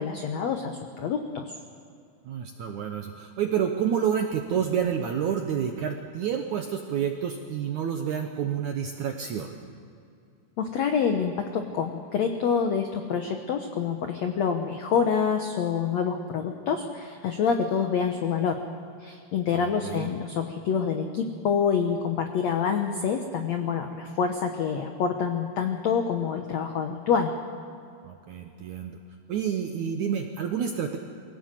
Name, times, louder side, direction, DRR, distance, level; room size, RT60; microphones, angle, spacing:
voice 1, 0.0-1.4 10.6-18.6 19.0-27.3, left 6 dB, 85° left, 5 dB, 1.5 m, -27 dB
voice 2, 2.3-9.6 19.5-20.1 28.0-29.0 29.3-31.0, right 8 dB, 75° right, 4 dB, 1.8 m, -29 dB
23.5 x 17.0 x 7.5 m, 2.4 s
omnidirectional pair, 4.7 m